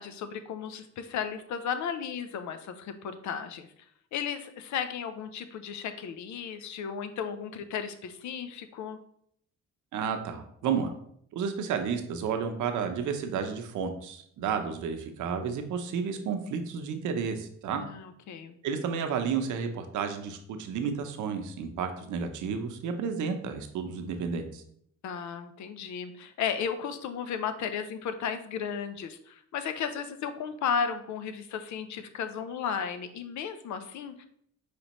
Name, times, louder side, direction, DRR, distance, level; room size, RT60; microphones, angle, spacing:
voice 1, 0.0-3.7 4.1-9.0 17.7-18.5 25.0-34.3, left 7 dB, 70° left, 10 dB, 0.6 m, -34 dB
voice 2, 9.9-10.9 11.3-17.8 18.6-24.6, right 6 dB, 75° right, 6 dB, 0.7 m, -31 dB
5.2 x 3.3 x 3.0 m, 0.67 s
cardioid pair, 90°, 30 cm